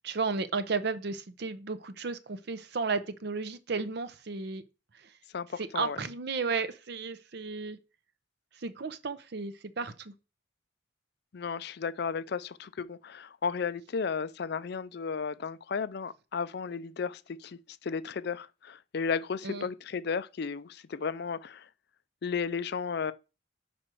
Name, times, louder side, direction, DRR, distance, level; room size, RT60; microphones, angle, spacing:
voice 1, 0.0-4.6 4.9-5.1 5.7-7.8 8.5-10.1 19.4-19.7, right 4 dB, 55° right, 0.6 m, -33 dB
voice 2, 5.3-6.0 11.3-21.7 22.2-23.1, left 5 dB, 55° left, 0.4 m, -34 dB
6.1 x 5.1 x 4.4 m
head